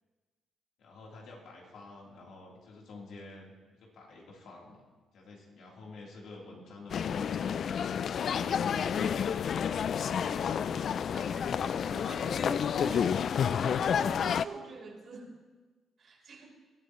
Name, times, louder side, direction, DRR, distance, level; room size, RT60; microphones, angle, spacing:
voice 1, 0.8-4.8 5.1-7.2 8.1-11.2, left 2 dB, 75° left, -2 dB, 3.5 m, -49 dB
sound 1, 6.9-14.4, left 7 dB, 60° left, 0.3 m, -30 dB
voice 2, 11.0-15.3 16.0-16.6, right 4 dB, 55° right, -1 dB, 4.0 m, -47 dB
21.0 x 12.5 x 3.1 m, 1.3 s
cardioid pair, 90°, 0 cm